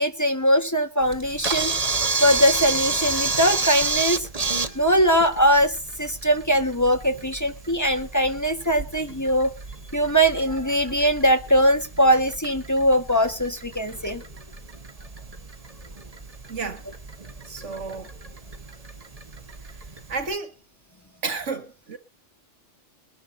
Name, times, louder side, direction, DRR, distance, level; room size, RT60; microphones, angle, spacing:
voice 1, 0.0-1.7 2.2-4.3 4.7-9.5 9.9-14.2, equal, 15° left, 1.4 m, -21 dB
Camera, 1.0-20.3, right 4 dB, 30° right, 1.4 m, -31 dB
voice 2, 16.5-16.8 17.5-18.3 20.1-20.5 21.2-22.0, right 4 dB, 80° right, 2.0 m, -31 dB
22.5 x 11.5 x 2.7 m
omnidirectional pair, 1.2 m